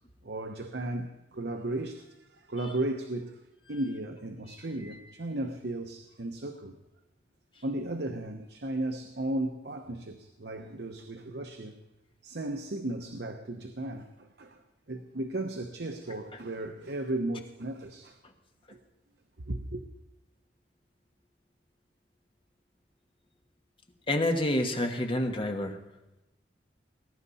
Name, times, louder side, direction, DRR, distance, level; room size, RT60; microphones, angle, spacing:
voice 1, 0.2-3.4 3.7-6.8 7.6-11.8 12.2-14.6 14.9-18.2 18.7-18.8 19.4-19.8, right 1 dB, 65° right, 0.9 m, -35 dB
voice 2, 24.1-25.8, left 1 dB, 30° left, 1.4 m, -28 dB
20.0 x 11.0 x 4.2 m
head